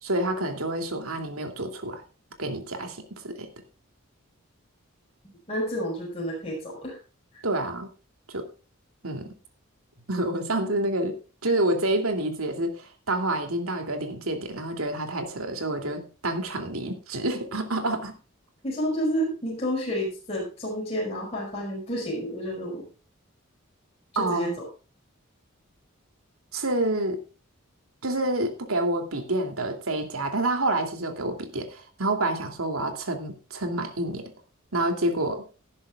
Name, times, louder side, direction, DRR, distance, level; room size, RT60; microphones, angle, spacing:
voice 1, 0.0-2.0 2.4-3.5 7.4-7.9 8.3-8.5 9.0-9.3 10.1-11.2 11.4-18.2 24.1-24.5 26.5-27.2 28.0-34.2 34.7-35.4, right 1 dB, 85° right, 6 dB, 2.9 m, -28 dB
voice 2, 5.5-7.0 7.3-7.4 18.6-22.9 24.1-24.6, equal, 30° left, -4 dB, 5.8 m, -30 dB
18.5 x 11.0 x 2.5 m, 0.34 s
head